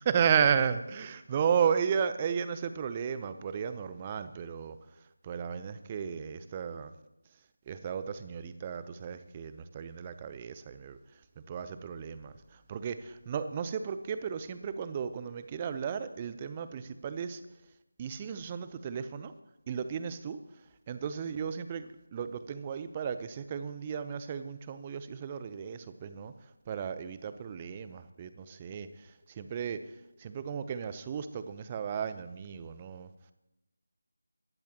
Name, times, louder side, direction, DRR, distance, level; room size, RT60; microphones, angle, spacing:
voice 1, 0.0-4.7 5.3-6.9 7.7-11.0 11.5-12.3 12.7-13.0 13.3-17.4 18.0-19.3 19.7-20.4 20.9-26.3 26.7-28.9 29.4-29.8 30.2-33.1, right 7 dB, 20° right, 12 dB, 0.8 m, -33 dB
24.0 x 19.0 x 3.0 m, 0.94 s
figure-of-eight pair, 160°, 0 cm